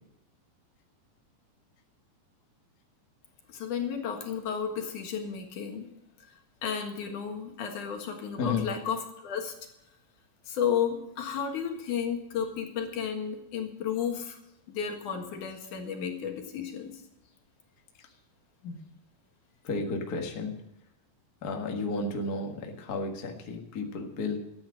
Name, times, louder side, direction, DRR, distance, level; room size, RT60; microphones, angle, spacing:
voice 1, 3.5-5.9 6.3-9.5 10.5-14.4 14.7-17.0, left 7 dB, 65° left, 3 dB, 3.0 m, -33 dB
voice 2, 19.6-20.6 21.4-24.4, left 3 dB, 40° left, 2 dB, 1.4 m, -32 dB
13.5 x 9.6 x 6.4 m, 0.84 s
omnidirectional pair, 4.1 m